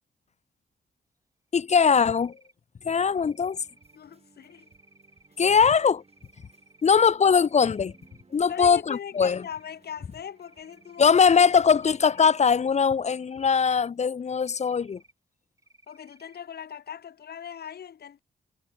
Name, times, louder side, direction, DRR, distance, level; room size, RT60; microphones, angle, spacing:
voice 1, 1.5-2.3 2.8-3.6 5.4-6.0 6.8-7.9 8.3-9.4 11.0-15.0, left 6 dB, 45° left, 0.7 m, -21 dB
Cricket, 1.7-2.5 3.1-4.0 4.4-5.3 6.0-6.8 7.2-8.2 8.6-9.8 10.4-11.2 11.7-12.6 13.1-13.9 14.3-15.1 15.6-16.4, right 2 dB, 20° right, 3.6 m, -59 dB
sound 1, 3.5-12.3, right 4 dB, 40° right, 5.5 m, -61 dB
voice 2, 3.9-4.7 6.9-7.0 8.5-11.2 15.9-18.2, left 8 dB, 75° left, 3.0 m, -40 dB
cardioid pair, 65°, 17 cm